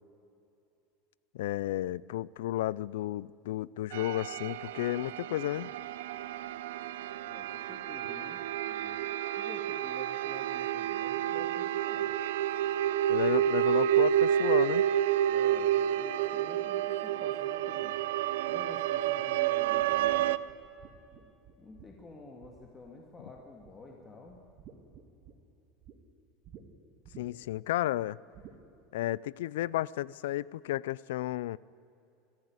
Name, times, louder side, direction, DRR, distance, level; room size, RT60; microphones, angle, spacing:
voice 1, 1.3-5.7 13.1-14.9 27.2-28.2 28.9-31.6, left 15 dB, 90° left, 0.4 m, -32 dB
sound 1, 3.9-20.4, right 11 dB, 85° right, 0.7 m, -30 dB
voice 2, 7.3-12.1 15.3-18.0 18.5-20.4 21.2-21.3 21.6-24.4, left 3 dB, 20° left, 2.1 m, -50 dB
sound 2, 19.8-23.0 23.4-24.0 24.3-26.0 26.4-26.6 27.0-27.6 28.3-28.6, right 8 dB, 40° right, 2.0 m, -54 dB
21.5 x 15.0 x 9.6 m
supercardioid pair, 145°, 0 cm